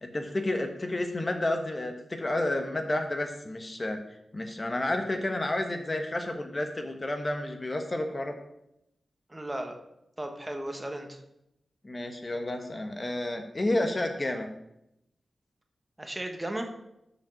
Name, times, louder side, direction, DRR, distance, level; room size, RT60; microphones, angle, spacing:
voice 1, 0.0-4.0 4.3-8.3 11.8-14.5, left 1 dB, 35° left, 5 dB, 1.1 m, -30 dB
voice 2, 9.3-9.7 10.2-11.2 16.0-16.7, right 1 dB, 20° right, 4 dB, 1.4 m, -35 dB
6.7 x 5.2 x 6.3 m, 0.82 s
cardioid pair, 50°, 0 cm